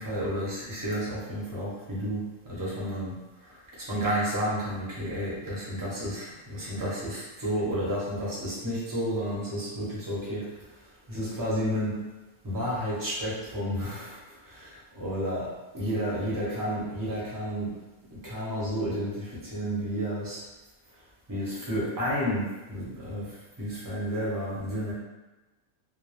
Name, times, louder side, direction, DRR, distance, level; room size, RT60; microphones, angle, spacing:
voice 1, 0.0-3.1 3.4-3.6 3.9-10.4 11.1-12.0 12.4-17.7 18.2-20.4 21.3-24.9, equal, 20° right, -7 dB, 0.6 m, -31 dB
2.2 x 2.0 x 3.1 m, 1.1 s
omnidirectional pair, 1.4 m